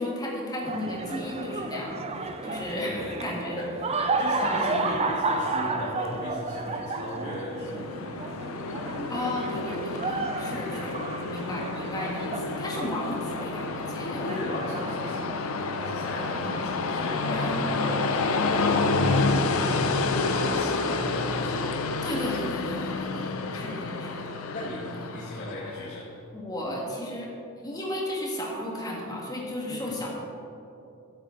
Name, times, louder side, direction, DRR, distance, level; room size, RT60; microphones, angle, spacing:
voice 1, 0.0-3.6 4.4-4.7 9.1-11.0 11.3-14.4 14.8-15.2 16.0-16.7 17.3-17.9 22.0-24.3 24.9-25.2 26.3-27.3 27.6-30.1, left 1 dB, 20° left, -3 dB, 2.0 m, -34 dB
sound 1, 0.6-19.2, right 3 dB, 30° right, 0.6 m, -33 dB
voice 2, 2.7-3.2 3.6-3.7 4.0-8.3 10.4-10.7 14.2-15.2 15.8-18.3 19.3-21.7 23.1-23.4 24.5-26.1 29.7-29.9, left 1 dB, 50° left, -5 dB, 1.6 m, -37 dB
Train, 7.2-25.9, left 3 dB, 70° left, 0.7 m, -29 dB
14.0 x 7.9 x 4.0 m, 2.8 s
head